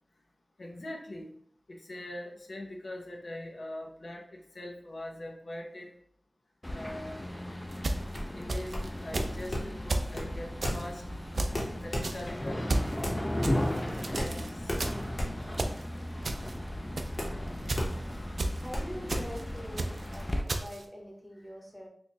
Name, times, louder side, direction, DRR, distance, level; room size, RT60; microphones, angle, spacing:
voice 1, 0.6-1.3 1.7-5.9 6.7-7.2 8.3-11.0 11.7-12.7 13.5-14.7 17.9-18.0, left 1 dB, 70° left, 1 dB, 0.5 m, -42 dB
sound 1, 6.6-20.4, left 1 dB, 20° left, 0.4 m, -36 dB
sound 2, 7.7-8.9 9.1-9.5 9.9-10.2 10.6-10.9 11.3-11.7 12.0-12.3 12.7-12.9 13.4-14.5 14.8-15.1 15.5-15.8 16.2-16.5 17.0-17.2 17.7-17.9 18.4-18.7 19.1-19.4 19.8-20.1 20.5-20.8, right 2 dB, 80° right, 0.3 m, -32 dB
sound 3, 8.1-20.2, equal, 50° left, 0.8 m, -37 dB
voice 2, 18.6-21.9, equal, ahead, -1 dB, 0.8 m, -44 dB
3.0 x 2.2 x 4.1 m, 0.63 s
wide cardioid pair, 80°, 0 cm